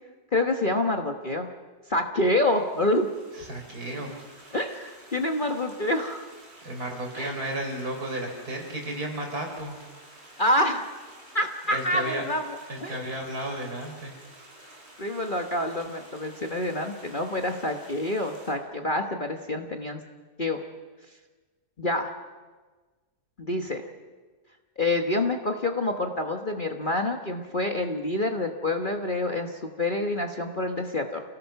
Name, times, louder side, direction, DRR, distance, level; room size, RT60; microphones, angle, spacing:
voice 1, 0.3-1.5 1.9-3.1 4.5-6.3 7.1-7.3 10.4-10.9 11.3-12.4 12.8-13.0 15.0-20.0 20.4-20.6 21.8-22.1 23.4-23.9 24.8-31.2, left 1 dB, 30° left, 4 dB, 1.3 m, -27 dB
Stream, 2.2-18.5, right 1 dB, 35° right, 5.5 m, -51 dB
voice 2, 3.4-4.1 6.6-9.8 11.7-12.2 12.7-14.1, right 1 dB, 60° right, 2 dB, 4.9 m, -33 dB
29.0 x 18.0 x 5.9 m, 1.3 s
omnidirectional pair, 1.8 m